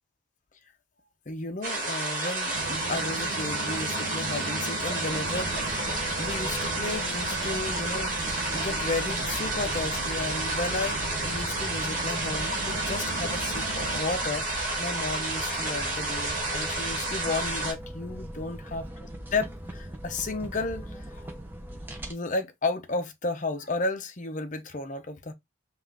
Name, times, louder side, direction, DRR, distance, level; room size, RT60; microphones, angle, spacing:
voice 1, 1.3-5.9 6.2-21.3 22.1-25.3, left 3 dB, 35° left, 0.6 m, -33 dB
sound 1, 1.6-17.7, right 2 dB, 40° right, 1.8 m, -30 dB
sound 2, 2.5-14.0, right 2 dB, 70° right, 0.9 m, -39 dB
sound 3, 5.1-22.1, equal, 10° right, 0.6 m, -41 dB
5.4 x 2.5 x 3.4 m
head